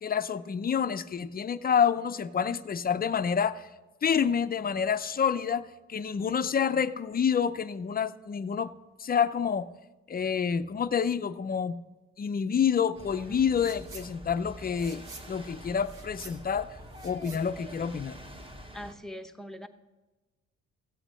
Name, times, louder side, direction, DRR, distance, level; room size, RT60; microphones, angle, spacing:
voice 1, 0.0-3.7 4.0-8.7 9.0-9.7 10.1-11.8 12.2-16.7 17.0-18.1, left 7 dB, 30° left, 13 dB, 0.5 m, -28 dB
sound 1, 12.9-18.9, equal, 20° right, 1.3 m, -46 dB
voice 2, 13.3-13.7 18.7-19.7, equal, ahead, 6 dB, 0.9 m, -43 dB
sound 2, 13.5-14.1 14.4-18.4, right 3 dB, 85° right, 2.3 m, -49 dB
15.5 x 8.1 x 5.0 m, 1.2 s
cardioid pair, 90°, 30 cm